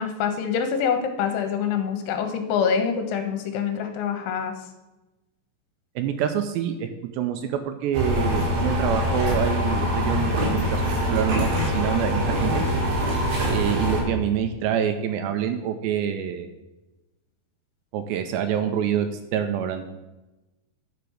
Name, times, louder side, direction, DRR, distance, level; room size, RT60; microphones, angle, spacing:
voice 1, 0.0-4.5, left 7 dB, 80° left, 6 dB, 3.4 m, -25 dB
voice 2, 6.0-6.9 7.1-10.8 11.1-12.6 13.5-16.5 17.9-19.1 19.3-19.9, right 9 dB, 85° right, 7 dB, 2.7 m, -26 dB
sound 1, 7.9-14.0, equal, 65° right, 4.9 m, -24 dB
10.5 x 5.9 x 6.4 m, 1.0 s
omnidirectional pair, 5.4 m